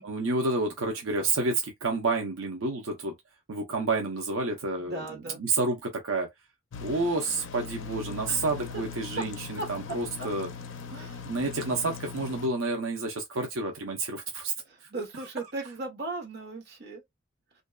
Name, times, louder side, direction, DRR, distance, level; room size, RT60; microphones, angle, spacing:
voice 1, 0.0-3.1 3.5-6.3 6.8-10.5 11.2-14.5, right 3 dB, 80° right, 0.7 m, -29 dB
voice 2, 4.8-5.4 8.3-8.4 8.7-8.8 9.6-9.7 10.2-10.3 10.9-11.2 14.7-17.0, right 2 dB, 55° right, 1.0 m, -37 dB
sound 1, 6.7-12.5, left 5 dB, 65° left, 0.4 m, -40 dB
2.6 x 2.2 x 2.3 m
head